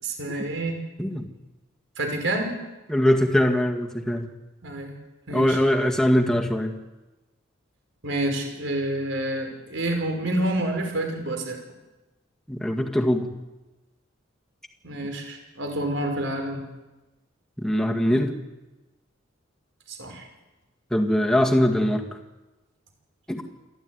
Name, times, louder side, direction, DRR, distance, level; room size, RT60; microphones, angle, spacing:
voice 1, 0.0-0.8 2.0-2.5 4.6-4.9 5.3-5.6 8.0-11.6 14.8-16.6 19.9-20.3, right 1 dB, 70° right, 4 dB, 5.5 m, -28 dB
voice 2, 2.9-4.3 5.3-6.7 12.5-13.2 17.6-18.4 20.9-22.0 23.3-23.4, left 1 dB, 5° left, 2 dB, 2.0 m, -22 dB
27.5 x 12.0 x 9.6 m, 1.1 s
head